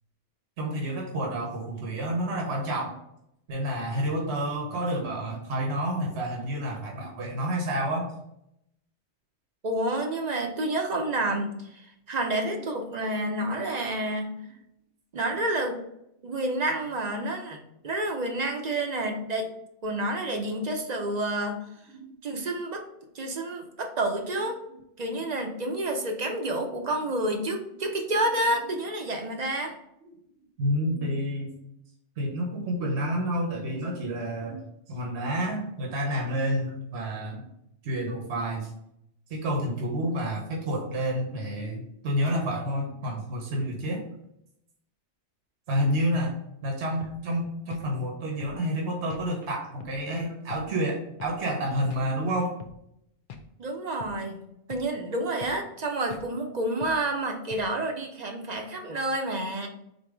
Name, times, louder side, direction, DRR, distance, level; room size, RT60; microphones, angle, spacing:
voice 1, 0.6-2.9 3.5-8.1 12.5-12.6 21.9-22.1 27.5-27.6 30.6-31.5 32.2-37.4 37.8-38.7 39.3-44.0 45.7-46.3 46.6-52.5, equal, 70° right, -1 dB, 1.1 m, -29 dB
voice 2, 9.6-14.4 15.1-15.8 16.2-19.5 19.8-21.6 22.2-22.8 23.1-24.6 25.0-29.7 53.6-54.4 54.7-59.7, right 1 dB, 45° right, 3 dB, 0.6 m, -29 dB
sound 1, 47.0-47.2 47.7-47.9 48.4-48.6 49.1-49.3 49.8-50.0 50.5-50.7 51.2-51.4 51.9-52.1 52.6-52.8 53.3-53.5 54.0-54.2 54.7-54.9 55.4-55.6 56.1-56.3 56.8-57.0 57.5-57.7, left 6 dB, 60° left, 0.6 m, -43 dB
3.9 x 2.7 x 4.8 m, 0.79 s
omnidirectional pair, 1.2 m